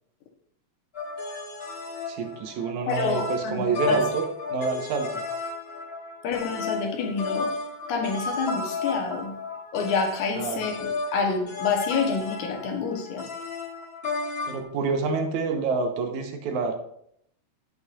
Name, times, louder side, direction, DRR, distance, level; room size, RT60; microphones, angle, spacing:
sound 1, 0.9-14.6, left 3 dB, 65° left, 0.6 m, -33 dB
voice 1, 2.1-5.2 10.3-10.6 14.5-16.7, right 4 dB, 85° right, 4 dB, 2.5 m, -28 dB
voice 2, 2.9-4.0 6.2-7.5 7.9-9.3 9.7-13.3, left 5 dB, 90° left, 2 dB, 2.7 m, -28 dB
11.0 x 7.9 x 2.5 m, 0.69 s
omnidirectional pair, 3.3 m